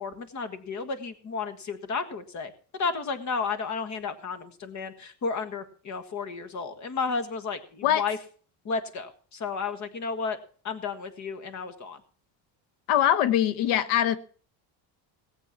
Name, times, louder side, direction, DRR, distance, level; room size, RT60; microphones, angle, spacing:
voice 1, 0.0-8.2 8.6-10.4 10.6-12.0, left 5 dB, 35° left, 10 dB, 1.7 m, -32 dB
voice 2, 12.9-14.2, left 11 dB, 90° left, 13 dB, 1.2 m, -22 dB
18.5 x 8.0 x 5.9 m, 0.43 s
cardioid pair, 155°, 48 cm